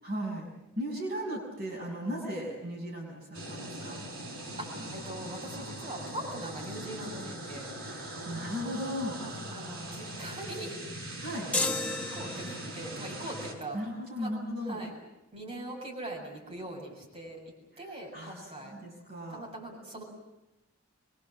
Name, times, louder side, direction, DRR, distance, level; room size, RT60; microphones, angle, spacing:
voice 1, 0.0-4.0 7.8-9.2 11.2-11.5 13.7-14.8 17.7-17.9 18.1-19.5, equal, 45° right, -2 dB, 6.7 m, -37 dB
sound 1, 3.3-13.5, right 1 dB, 70° right, 6.7 m, -41 dB
voice 2, 4.6-7.7 9.2-10.8 12.1-14.3 14.7-15.0 15.3-17.4 17.8-18.7 19.3-20.0, right 1 dB, 30° right, -1 dB, 7.4 m, -41 dB
sound 2, 11.5-12.8, left 3 dB, 5° left, 1.0 m, -32 dB
26.0 x 23.0 x 7.7 m, 0.96 s
head